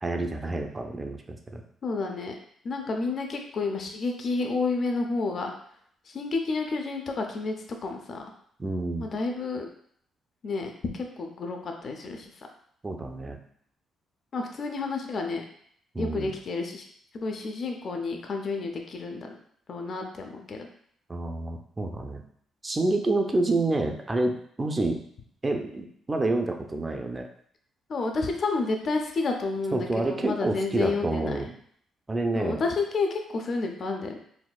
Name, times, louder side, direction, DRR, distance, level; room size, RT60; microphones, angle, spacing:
voice 1, 0.0-1.6 8.6-9.1 12.8-13.4 15.9-16.3 21.1-22.2 22.6-25.0 25.4-27.3 29.7-31.5 32.1-32.6, right 2 dB, 25° right, 4 dB, 0.4 m, -28 dB
voice 2, 1.8-2.3 2.6-5.5 6.1-7.6 7.8-8.2 9.0-9.6 10.4-12.3 14.3-15.4 16.0-16.8 17.1-19.3 19.7-20.7 27.9-31.4 32.3-34.2, left 3 dB, 50° left, 3 dB, 0.5 m, -30 dB
4.1 x 2.3 x 2.3 m, 0.64 s
cardioid pair, 90°, 0 cm